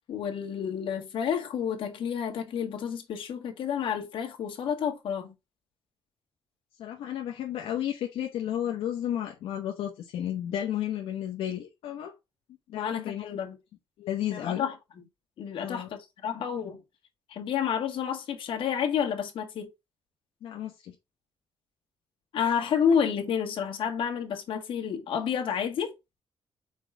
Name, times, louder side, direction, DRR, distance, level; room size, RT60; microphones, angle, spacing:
voice 1, 0.1-5.3 12.7-13.6 14.3-14.8 15.4-16.8 17.3-19.7 22.3-25.9, left 7 dB, 65° left, 1.8 m, -30 dB
voice 2, 6.8-12.1 12.7-13.2 14.0-14.6 15.6-15.9 20.4-20.9, left 11 dB, 80° left, 1.1 m, -32 dB
4.8 x 4.2 x 4.8 m
cardioid pair, 120°, 10 cm